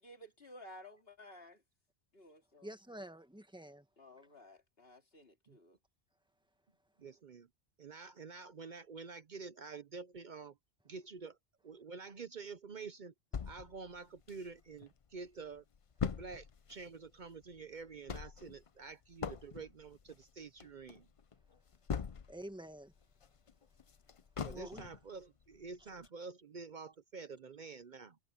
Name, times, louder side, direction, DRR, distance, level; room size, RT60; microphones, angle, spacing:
voice 1, 0.0-1.6 2.1-2.7 4.0-5.8, left 1 dB, 60° left, 2.8 m, -55 dB
voice 2, 2.6-3.9 22.3-22.9 24.5-24.8, right 1 dB, 5° right, 1.2 m, -48 dB
voice 3, 7.0-7.5 7.8-10.6 10.8-11.4 11.6-13.1 13.4-15.6 16.0-21.1 24.4-28.2, right 4 dB, 50° right, 0.8 m, -48 dB
sound 1, 13.3-14.9 15.3-15.4 15.5-22.5 22.9-25.1 25.5-25.6 26.0-26.1, left 6 dB, 40° left, 0.5 m, -42 dB
omnidirectional pair, 1.1 m